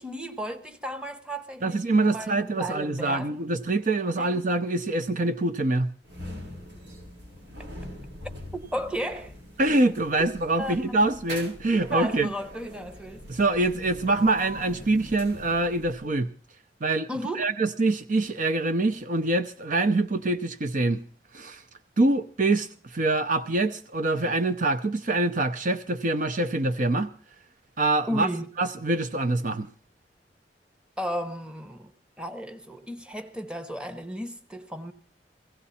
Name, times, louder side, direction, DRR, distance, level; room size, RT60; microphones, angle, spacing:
voice 1, 0.0-3.5 4.2-4.3 8.5-9.3 10.6-11.1 11.7-13.3 17.1-17.5 28.1-28.5 31.0-31.9 32.2-34.9, equal, 5° right, 1.1 m, -34 dB
voice 2, 1.6-5.9 9.6-12.3 13.3-16.3 16.8-17.1 17.3-21.0 21.3-21.6 22.0-27.1 27.8-28.3 28.6-29.7, right 2 dB, 50° right, 0.6 m, -25 dB
sound 1, 6.0-16.2, equal, 80° right, 5.1 m, -42 dB
16.5 x 16.0 x 4.2 m
head